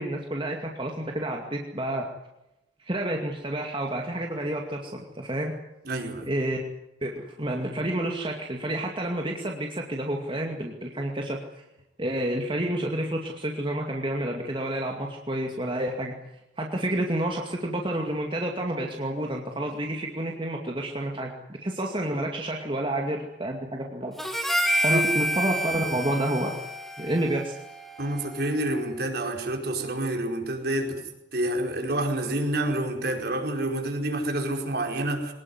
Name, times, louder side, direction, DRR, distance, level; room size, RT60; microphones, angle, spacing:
voice 1, 0.0-2.1 2.8-5.5 6.3-6.6 7.0-11.4 12.0-16.1 16.6-21.3 21.6-24.1 24.8-26.5 27.0-27.6, right 1 dB, 25° right, 1 dB, 2.3 m, -29 dB
voice 2, 5.8-6.3 24.9-25.1 28.0-31.0 31.3-35.3, right 1 dB, 55° right, 3 dB, 4.8 m, -28 dB
Harmonica, 24.2-28.7, equal, ahead, 2.7 m, -29 dB
23.0 x 19.5 x 9.6 m, 0.90 s
head